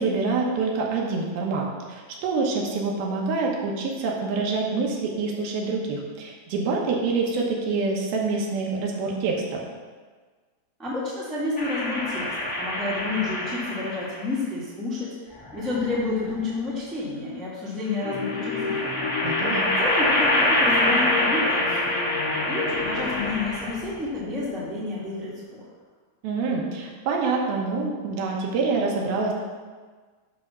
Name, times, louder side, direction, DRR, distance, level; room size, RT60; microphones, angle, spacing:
voice 1, 0.0-9.6 19.2-19.7 26.2-29.3, right 4 dB, 80° right, -1 dB, 2.9 m, -26 dB
voice 2, 10.8-15.1 15.5-19.0 19.8-21.9 22.5-25.7, left 3 dB, ahead, -8 dB, 0.9 m, -30 dB
sound 1, 11.6-14.2 15.3-16.3 17.9-23.9, left 1 dB, 30° left, 1.4 m, -26 dB
sound 2, 18.0-23.3, left 5 dB, 80° left, 2.6 m, -31 dB
10.5 x 3.5 x 6.0 m, 1.5 s
omnidirectional pair, 4.5 m